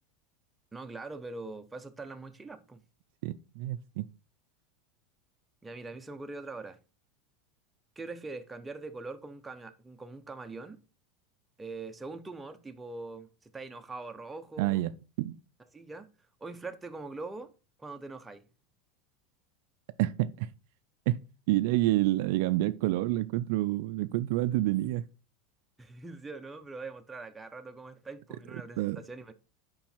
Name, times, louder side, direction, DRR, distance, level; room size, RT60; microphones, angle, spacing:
voice 1, 0.7-2.8 5.6-6.8 8.0-10.8 11.6-14.8 15.7-16.1 16.4-17.5 17.8-18.4 25.8-29.3, right 3 dB, 10° right, 0.7 m, -42 dB
voice 2, 3.2-4.0 14.6-14.9 15.2-15.4 20.0-20.5 21.1-21.2 21.5-25.0 28.8-29.0, right 16 dB, 70° right, 0.4 m, -28 dB
5.2 x 4.5 x 5.5 m
supercardioid pair, 130°, 0 cm